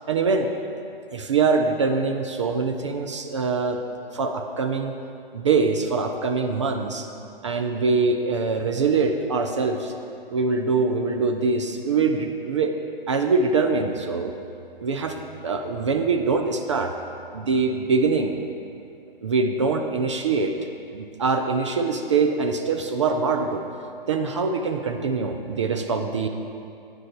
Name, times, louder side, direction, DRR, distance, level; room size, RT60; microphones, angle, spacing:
voice 1, 0.1-0.5 1.1-3.8 4.1-4.9 5.3-7.1 7.4-9.9 10.3-12.8 13.1-14.3 14.8-15.2 15.4-16.9 17.3-18.3 19.2-20.5 20.9-23.6 24.1-26.3, right 4 dB, 30° right, 4 dB, 0.4 m, -23 dB
9.6 x 6.2 x 4.3 m, 2.5 s
figure-of-eight pair, 130°, 29 cm